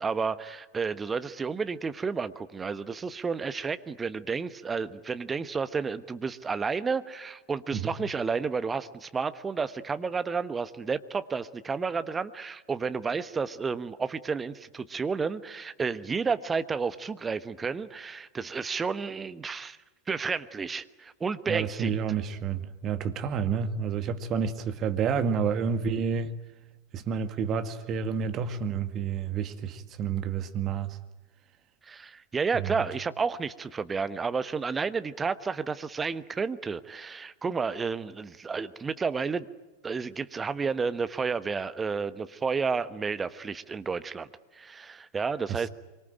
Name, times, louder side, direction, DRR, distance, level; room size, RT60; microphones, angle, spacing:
voice 1, 0.0-19.8 20.1-22.0 31.9-39.5 39.8-44.3 44.5-45.7, right 5 dB, 15° right, 1.2 m, -31 dB
voice 2, 21.5-26.3 26.9-31.0 32.5-32.7 45.5-45.7, right 6 dB, 30° right, 2.0 m, -29 dB
25.5 x 24.0 x 8.9 m
figure-of-eight pair, 90°, 0 cm